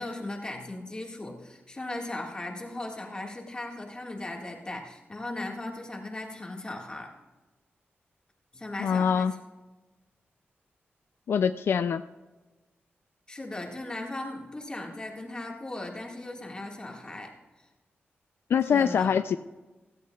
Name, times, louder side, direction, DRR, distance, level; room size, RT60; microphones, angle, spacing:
voice 1, 0.0-7.1 8.5-9.4 13.3-17.3 18.6-19.1, left 2 dB, 20° left, 1 dB, 1.8 m, -37 dB
voice 2, 8.8-9.3 11.3-12.0 18.5-19.4, left 7 dB, 70° left, 10 dB, 0.3 m, -24 dB
16.5 x 15.0 x 2.3 m, 1.2 s
wide cardioid pair, 155°, 4 cm